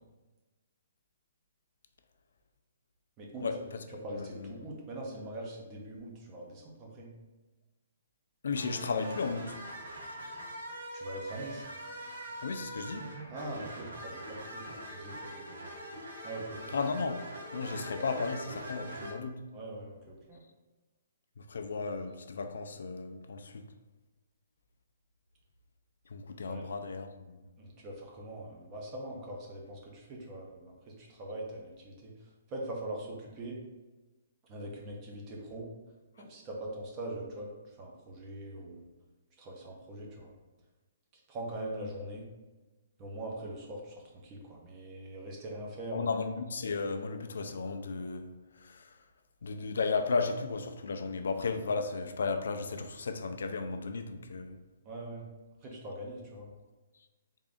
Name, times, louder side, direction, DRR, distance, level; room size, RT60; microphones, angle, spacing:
voice 1, 3.2-3.7 4.0-7.1 10.9-11.6 13.3-15.6 16.2-16.8 19.5-20.4 26.5-26.6 27.6-32.1 32.5-33.6 34.5-35.7 36.2-37.5 37.8-38.9 39.4-40.3 41.3-42.3 43.0-43.9 44.2-46.1 54.8-55.2 55.6-56.5, right 1 dB, 15° right, -1 dB, 0.5 m, -42 dB
voice 2, 4.1-4.5 8.4-9.6 12.4-13.1 16.7-19.4 21.4-23.7 26.1-27.4 45.9-48.3 48.6-48.9 49.4-54.6, left 4 dB, 75° left, 7 dB, 0.4 m, -34 dB
sound 1, 8.5-19.1, right 1 dB, 85° right, 1.1 m, -43 dB
3.4 x 2.5 x 3.6 m, 1.2 s
hypercardioid pair, 180°, 0 cm